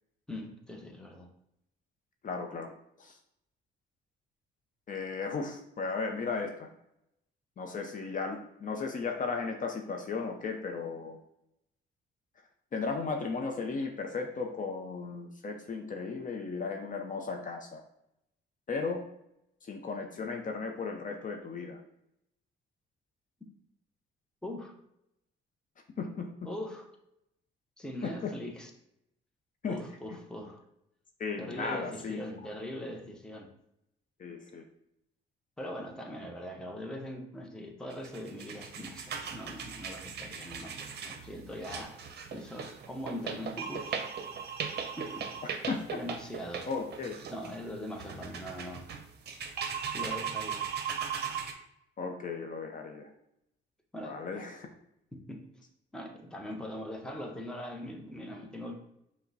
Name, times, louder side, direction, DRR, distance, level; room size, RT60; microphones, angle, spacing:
voice 1, 0.3-1.3 24.4-24.7 26.4-26.9 27.8-28.7 29.7-30.6 31.4-33.5 35.6-42.0 42.3-44.1 45.0-45.5 46.0-46.7 47.3-48.9 49.9-50.7 53.9-54.2 55.1-55.4 55.9-58.7, left 1 dB, 5° left, 2 dB, 0.7 m, -41 dB
voice 2, 2.2-2.7 3.0-3.2 4.9-6.7 7.6-11.2 12.7-17.8 18.7-19.0 19.6-21.8 26.0-26.3 28.0-28.3 29.6-29.8 31.2-32.2 34.2-34.6 45.7-46.0 46.7-47.2 52.0-53.1 54.0-54.7, left 4 dB, 40° left, 3 dB, 0.6 m, -35 dB
sound 1, 37.9-51.5, right 7 dB, 55° right, 0.6 m, -38 dB
5.6 x 2.2 x 3.9 m, 0.80 s
cardioid pair, 90°, 20 cm